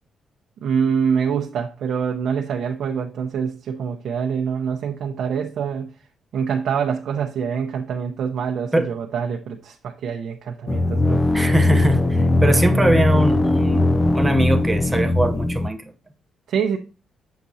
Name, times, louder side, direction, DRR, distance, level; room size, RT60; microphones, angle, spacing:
voice 1, 0.6-5.9 6.3-11.2 12.4-12.6 16.5-16.8, right 7 dB, 65° right, 0.7 m, -25 dB
sound 1, 10.7-15.7, left 2 dB, 20° left, 0.4 m, -19 dB
voice 2, 11.3-15.8, right 1 dB, 10° right, 0.8 m, -22 dB
7.4 x 5.8 x 2.7 m
cardioid pair, 135°, 0 cm